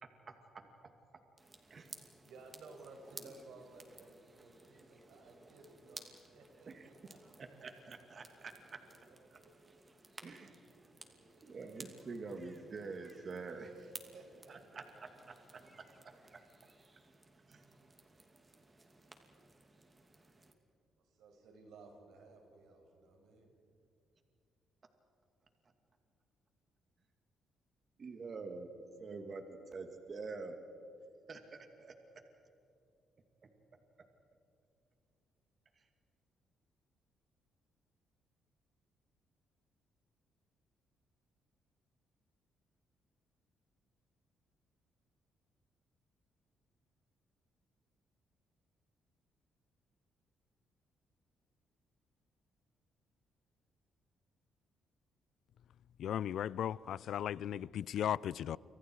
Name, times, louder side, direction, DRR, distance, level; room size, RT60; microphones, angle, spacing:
voice 1, 0.0-1.2 1.7-1.9 6.7-7.1 7.4-8.8 9.3-9.4 10.2-10.8 11.4-13.9 14.5-16.4 17.5-17.7 28.0-30.6 31.3-32.2 33.4-33.5 34.0-34.1 35.7-35.9, right 4 dB, 45° right, 2.5 m, -47 dB
sound 1, 1.4-20.5, right 2 dB, 25° right, 2.8 m, -57 dB
voice 2, 2.2-7.4 8.6-9.7 11.0-11.8 13.8-15.1 21.0-23.5, right 3 dB, 80° right, 5.9 m, -58 dB
voice 3, 56.0-58.6, left 10 dB, 70° left, 0.4 m, -36 dB
30.0 x 25.5 x 4.8 m
cardioid pair, 90°, 0 cm